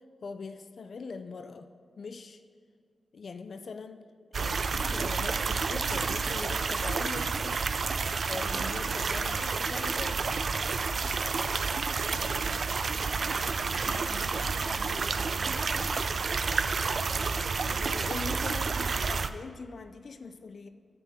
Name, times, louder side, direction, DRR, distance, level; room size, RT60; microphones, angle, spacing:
voice 1, 0.0-1.7 2.0-2.4 3.1-4.0 4.4-7.6 8.3-10.4 13.2-14.2 17.1-20.7, left 4 dB, 65° left, 8 dB, 0.4 m, -42 dB
sound 1, 4.3-19.3, right 4 dB, 65° right, 0.3 m, -30 dB
voice 2, 9.1-9.6 11.8-12.6 13.7-16.4, left 1 dB, 20° left, 4 dB, 1.1 m, -49 dB
9.3 x 6.9 x 3.6 m, 2.2 s
cardioid pair, 50°, 0 cm